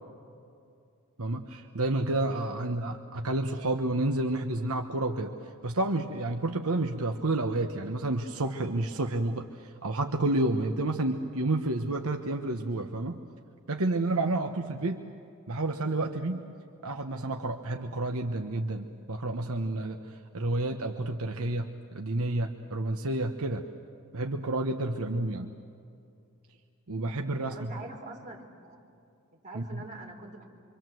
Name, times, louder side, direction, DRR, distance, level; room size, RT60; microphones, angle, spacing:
voice 1, 1.2-13.2 13.7-15.0 15.5-16.4 16.8-23.6 24.1-25.5 26.9-27.7 29.5-29.8, right 2 dB, 70° right, 4 dB, 1.2 m, -30 dB
voice 2, 27.5-28.8 29.3-30.4, right 2 dB, 35° right, -1 dB, 4.6 m, -44 dB
27.0 x 25.0 x 7.8 m, 2.5 s
head